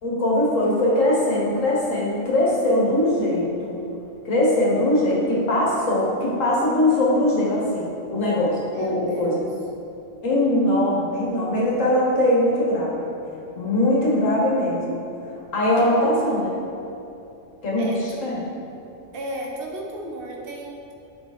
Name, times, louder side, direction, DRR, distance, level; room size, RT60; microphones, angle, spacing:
voice 1, 0.0-3.8 4.3-9.4 10.2-13.1 13.6-16.5 17.6-18.4, left 1 dB, 80° left, -4 dB, 1.8 m, -21 dB
voice 2, 8.7-9.5 17.8-18.0 19.1-20.9, right 1 dB, 50° right, 0 dB, 1.1 m, -34 dB
7.4 x 4.9 x 4.2 m, 2.7 s
omnidirectional pair, 1.3 m